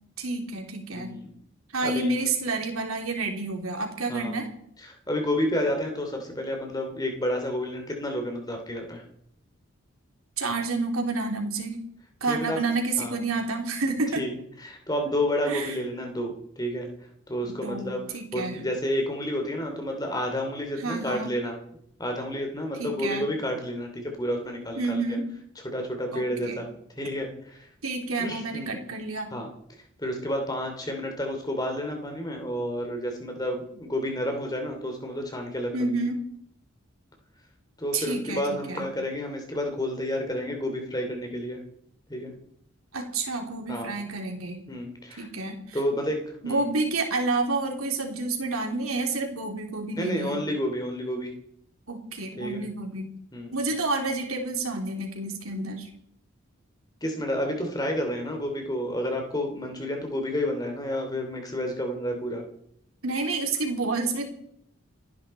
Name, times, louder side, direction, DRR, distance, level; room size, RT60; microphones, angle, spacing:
voice 1, 0.2-1.2 1.7-4.5 10.4-11.8 12.2-14.2 15.5-15.8 17.4-18.6 20.8-21.3 22.8-23.3 24.8-25.3 26.1-26.6 27.8-29.3 35.7-36.2 37.9-38.4 38.7-38.8 42.9-44.6 45.2-45.8 46.4-50.4 51.9-53.1 53.5-55.9 63.0-64.3, right 3 dB, 85° right, 2 dB, 3.3 m, -29 dB
voice 2, 0.9-1.2 1.8-2.1 4.1-4.3 4.8-9.0 12.3-12.6 13.0-13.2 14.2-14.3 14.6-16.9 17.3-18.0 18.3-21.6 22.0-25.0 25.6-26.7 27.0-27.6 28.2-28.8 29.3-29.5 30.0-35.7 37.8-41.6 42.1-42.3 43.7-43.9 44.7-45.3 45.7-46.6 50.0-51.3 52.4-52.6 53.3-53.6 57.0-62.4, left 1 dB, 20° left, 3 dB, 2.9 m, -30 dB
29.5 x 10.5 x 4.4 m, 0.71 s
head